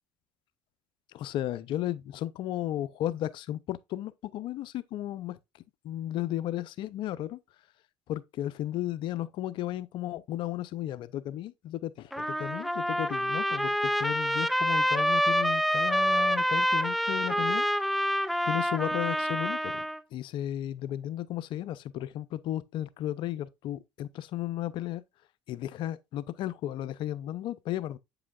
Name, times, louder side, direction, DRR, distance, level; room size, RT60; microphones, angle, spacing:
voice 1, 1.1-5.4 5.8-7.4 8.1-17.7 18.5-19.8 20.1-25.0 25.5-28.0, left 13 dB, 60° left, 0.5 m, -34 dB
Trumpet, 12.1-20.0, equal, ahead, 0.3 m, -27 dB
8.2 x 4.9 x 2.4 m
supercardioid pair, 80°, 9 cm